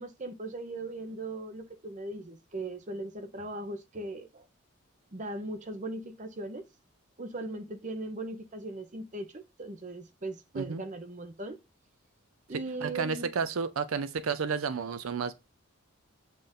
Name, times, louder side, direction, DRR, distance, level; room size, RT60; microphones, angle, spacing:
voice 1, 0.0-4.5 5.1-6.6 7.2-11.6 12.5-13.4, right 2 dB, 35° right, 0.8 m, -39 dB
voice 2, 12.8-15.3, right 5 dB, 80° right, 0.5 m, -31 dB
7.6 x 2.6 x 5.1 m
head